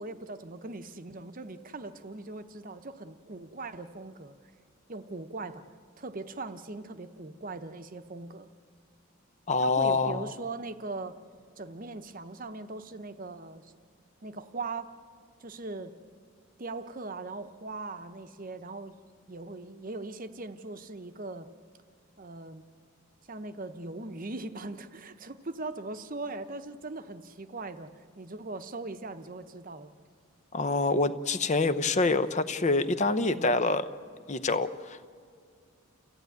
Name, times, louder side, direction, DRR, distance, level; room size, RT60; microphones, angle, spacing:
voice 1, 0.0-4.3 4.9-5.6 6.0-8.5 9.6-11.2 11.6-13.7 14.2-14.9 15.4-15.9 16.6-18.9 19.3-21.5 22.2-22.6 23.3-29.9 33.1-33.5, right 3 dB, 40° right, 10 dB, 0.9 m, -40 dB
voice 2, 9.5-10.2 30.5-33.8 34.3-35.1, left 3 dB, 30° left, 12 dB, 0.7 m, -26 dB
29.0 x 15.0 x 9.3 m, 2.1 s
head